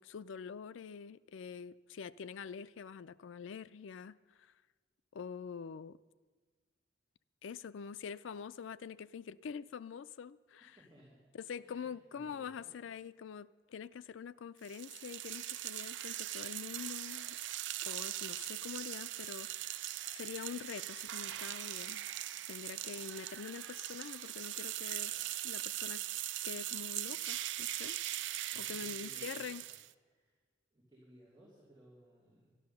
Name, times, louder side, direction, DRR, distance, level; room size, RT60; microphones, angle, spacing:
voice 1, 0.0-4.5 5.1-6.0 7.4-10.8 11.3-17.4 17.8-22.1 22.5-25.1 25.4-26.0 26.4-28.0 28.5-29.6, left 6 dB, 85° left, 15 dB, 0.4 m, -45 dB
voice 2, 10.6-11.2 11.6-12.8 28.5-29.8 30.1-30.3 30.7-32.5, right 1 dB, 25° right, -8 dB, 3.2 m, -61 dB
sound 1, 14.6-29.9, right 13 dB, 70° right, 0.4 m, -40 dB
12.5 x 11.5 x 6.8 m, 1.5 s
head